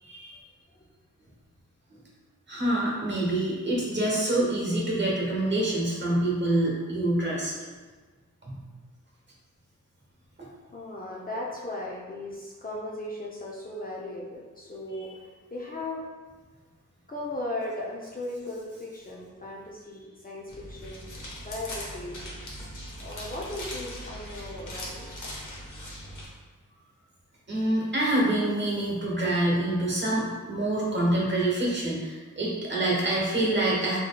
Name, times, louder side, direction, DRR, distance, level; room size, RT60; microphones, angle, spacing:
voice 1, 0.0-0.4 2.5-7.5 8.4-8.6 14.9-15.0 27.5-34.0, right 1 dB, 35° right, -4 dB, 1.1 m, -26 dB
voice 2, 10.7-16.0 17.1-21.0 21.4-22.3 23.0-25.1 25.7-26.0, left 1 dB, 30° left, -4 dB, 0.5 m, -37 dB
sound 1, 20.5-26.3, equal, 75° left, 0.9 m, -40 dB
4.0 x 3.1 x 2.2 m, 1.4 s
wide cardioid pair, 70°, 31 cm